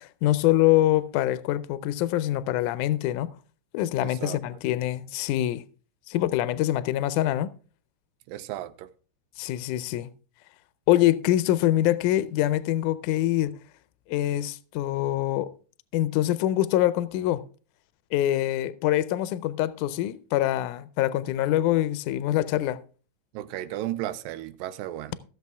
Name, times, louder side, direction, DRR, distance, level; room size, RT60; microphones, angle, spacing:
voice 1, 0.0-3.3 3.7-5.6 6.1-7.5 9.4-10.1 10.9-13.6 14.1-15.5 15.9-17.4 18.1-22.8, left 14 dB, 80° left, 2.0 m, -24 dB
voice 2, 4.0-4.4 8.3-8.9 23.3-25.2, right 14 dB, 90° right, 2.4 m, -34 dB
15.0 x 7.0 x 3.5 m
omnidirectional pair, 3.9 m